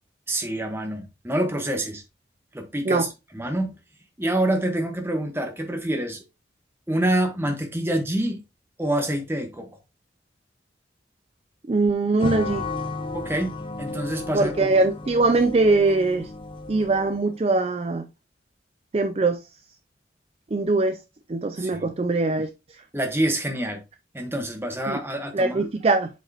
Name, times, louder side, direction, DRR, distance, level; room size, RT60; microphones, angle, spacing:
voice 1, 0.3-2.0 2.5-3.7 4.2-6.2 6.9-8.4 8.8-9.7 13.1-13.5 13.8-14.9 21.6-21.9 22.9-23.8 24.1-25.7, right 1 dB, 15° right, 1.3 m, -26 dB
voice 2, 11.7-12.6 14.3-16.3 16.7-18.1 18.9-19.4 20.5-21.0 21.3-22.5 24.9-25.0 25.3-26.1, right 3 dB, 30° right, 0.4 m, -22 dB
sound 1, 12.2-17.3, left 3 dB, 30° left, 0.5 m, -33 dB
7.9 x 4.7 x 2.9 m
head